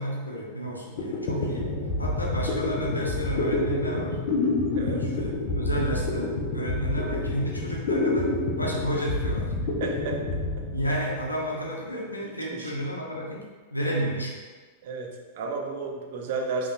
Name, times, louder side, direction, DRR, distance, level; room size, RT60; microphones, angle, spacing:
voice 1, 0.0-1.7 2.0-4.2 4.8-8.3 8.6-9.5 10.7-13.4 13.7-14.4, equal, 90° left, -2 dB, 0.7 m, -31 dB
sound 1, 0.7-0.8 1.0-11.4, left 2 dB, 55° left, 0.7 m, -28 dB
voice 2, 4.7-5.2 9.8-10.2 12.2-12.7 14.8-16.7, right 4 dB, 60° right, 1 dB, 0.7 m, -33 dB
5.3 x 2.9 x 2.5 m, 1.4 s
figure-of-eight pair, 95°, 0 cm